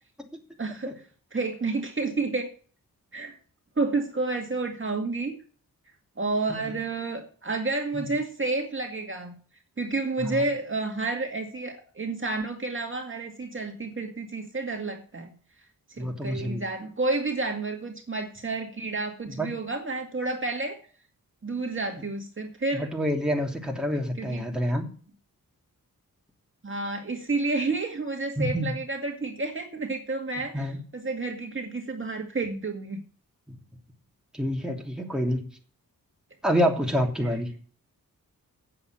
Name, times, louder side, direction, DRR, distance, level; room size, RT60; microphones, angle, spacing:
voice 1, 0.6-0.9 1.3-2.5 3.1-3.3 3.8-5.3 6.2-9.3 9.8-15.3 16.0-20.8 21.4-22.9 24.2-24.4 26.6-33.0, right 3 dB, 35° right, 3 dB, 2.1 m, -30 dB
voice 2, 16.0-16.6 19.3-19.5 22.7-24.9 28.4-28.8 30.5-30.8 34.3-35.4 36.4-37.5, equal, ahead, 1 dB, 3.0 m, -27 dB
8.8 x 7.4 x 7.9 m, 0.42 s
cardioid pair, 65°, 35 cm